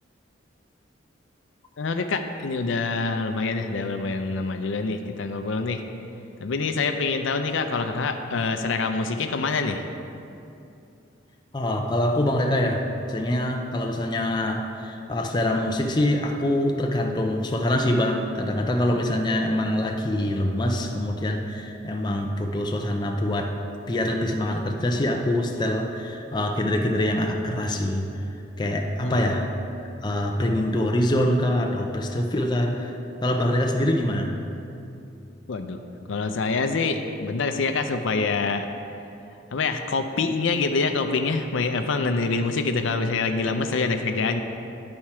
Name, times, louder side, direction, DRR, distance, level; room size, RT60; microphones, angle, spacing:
voice 1, 1.8-5.8 6.4-9.8 29.0-29.3 35.5-35.8 36.1-38.7 39.5-44.4, left 4 dB, 75° left, 7 dB, 0.5 m, -26 dB
voice 2, 11.5-23.5 23.9-28.1 28.6-29.5 30.0-34.3, left 1 dB, 20° left, 2 dB, 0.4 m, -24 dB
10.5 x 4.3 x 4.7 m, 2.7 s
head